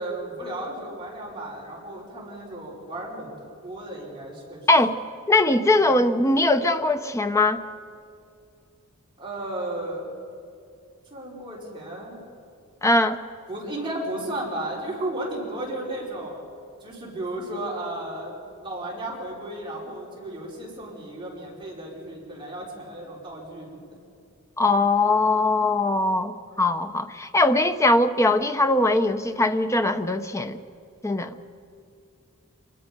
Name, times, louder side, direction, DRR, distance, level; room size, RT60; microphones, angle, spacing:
voice 1, 0.0-3.4 3.6-4.6 5.8-6.0 9.2-10.1 11.1-12.2 13.5-16.4 16.8-23.8, right 1 dB, 25° right, 5.4 m, -34 dB
voice 2, 5.3-7.6 12.8-13.2 24.6-30.6 31.0-31.3, left 2 dB, 15° left, 0.8 m, -21 dB
26.5 x 21.0 x 5.4 m
head